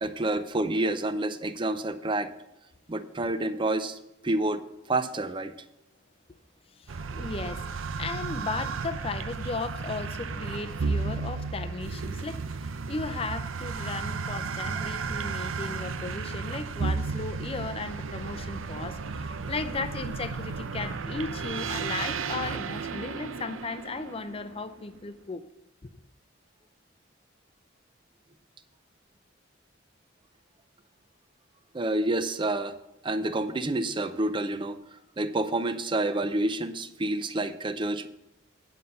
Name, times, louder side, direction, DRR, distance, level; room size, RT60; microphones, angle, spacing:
voice 1, 0.0-2.3 2.9-4.0 4.2-4.6 4.9-5.5 31.7-32.7 33.0-34.8 35.2-38.1, right 2 dB, 25° right, 0.5 m, -28 dB
voice 2, 6.8-12.6 12.9-25.4 25.8-25.9, left 3 dB, 30° left, 0.5 m, -36 dB
sound 1, 6.9-24.8, right 4 dB, 85° right, 0.6 m, -33 dB
9.7 x 5.6 x 6.5 m
head